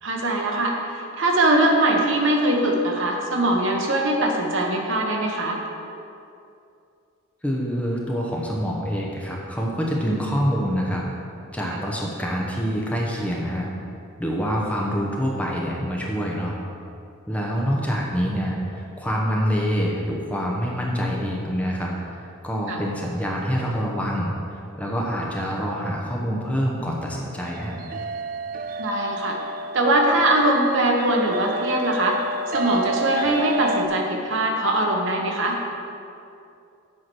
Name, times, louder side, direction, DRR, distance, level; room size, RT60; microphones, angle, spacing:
voice 1, 0.0-5.6 22.7-22.8 28.8-29.4 29.7-32.2 32.5-35.6, right 1 dB, 55° right, 1 dB, 1.1 m, -21 dB
voice 2, 7.4-11.0 11.5-13.7 14.2-16.6 17.3-27.8, equal, 5° left, -2 dB, 0.8 m, -26 dB
sound 1, 27.4-33.9, right 2 dB, 40° right, 0.3 m, -30 dB
7.7 x 5.7 x 6.2 m, 2.6 s
head